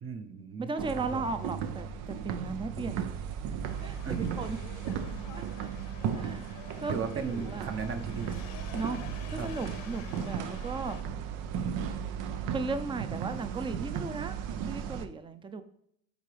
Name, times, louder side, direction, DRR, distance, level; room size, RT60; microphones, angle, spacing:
voice 1, 0.0-0.7 1.1-1.4 4.0-4.4 5.1-5.2 6.9-8.4 9.3-9.5, right 5 dB, 40° right, 7 dB, 1.1 m, -36 dB
voice 2, 0.6-3.1 3.8-4.6 5.3-5.4 6.1-6.9 7.2-7.7 8.7-9.0 9.3-11.0 12.5-14.4 14.7-15.6, right 3 dB, 15° right, 10 dB, 0.6 m, -36 dB
sound 1, 0.8-15.1, right 7 dB, 70° right, 0.7 m, -35 dB
sound 2, 3.7-11.0, left 9 dB, 70° left, 1.0 m, -50 dB
10.0 x 3.7 x 3.4 m, 0.72 s
supercardioid pair, 85°, 33 cm